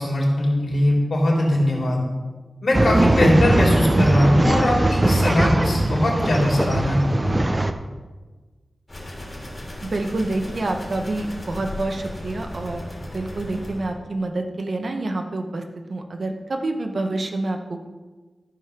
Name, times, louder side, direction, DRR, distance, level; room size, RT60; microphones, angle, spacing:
voice 1, 0.0-2.0 2.6-7.4, left 1 dB, 65° left, -3 dB, 3.3 m, -21 dB
Male speech man speaking / Chatter / Rattle, 2.7-7.7, right 1 dB, 20° right, 0.6 m, -20 dB
sound 1, 8.9-14.0, left 1 dB, 25° left, 3.1 m, -36 dB
voice 2, 9.8-15.6 15.9-17.9, right 2 dB, 55° right, 4 dB, 1.1 m, -27 dB
13.5 x 5.2 x 6.0 m, 1.3 s
wide cardioid pair, 95°, 0 cm